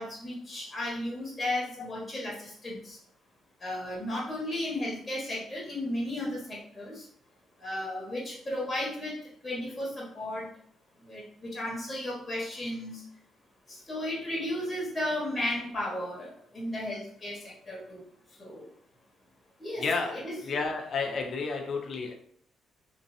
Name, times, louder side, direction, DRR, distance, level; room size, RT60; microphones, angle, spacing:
voice 1, 0.0-3.0 3.6-7.0 7.6-10.5 11.1-13.0 13.9-17.4 17.7-18.0 18.4-18.7 19.6-19.8 20.1-20.4, left 1 dB, 20° left, -6 dB, 1.4 m, -34 dB
voice 2, 19.8-22.1, left 4 dB, 55° left, 3 dB, 0.7 m, -31 dB
3.3 x 3.0 x 2.7 m, 0.64 s
cardioid pair, 90°, 0 cm